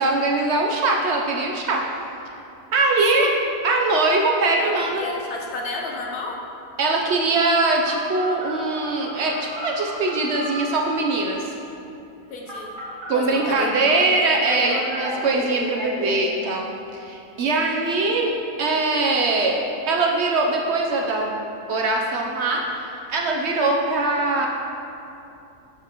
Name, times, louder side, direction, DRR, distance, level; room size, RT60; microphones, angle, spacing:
voice 1, 0.0-1.8 2.7-3.3 3.6-5.0 6.8-11.5 13.1-18.3 18.6-19.6 19.9-21.3 21.7-24.5, right 3 dB, 70° right, 0 dB, 0.6 m, -22 dB
voice 2, 4.6-6.3 12.3-12.7 13.1-14.1 14.5-14.9 17.5-17.6, left 3 dB, 75° left, 0 dB, 1.2 m, -32 dB
Telephone, 7.8-11.2 12.5-14.0 14.5-16.1, right 1 dB, 35° right, 1.6 m, -34 dB
7.1 x 6.8 x 2.9 m, 2.7 s
omnidirectional pair, 1.7 m